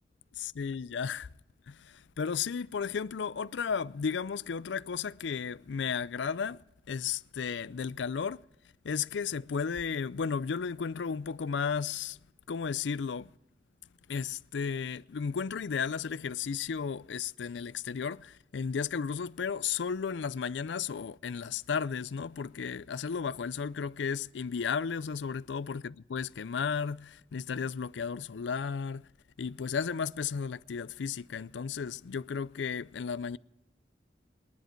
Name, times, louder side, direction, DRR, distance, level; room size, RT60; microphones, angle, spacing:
voice 1, 0.3-1.3 1.7-6.6 6.9-8.4 8.8-12.2 12.5-13.3 14.1-29.1 29.4-33.4, left 6 dB, 85° left, 0.4 m, -34 dB
26.5 x 10.5 x 4.5 m
head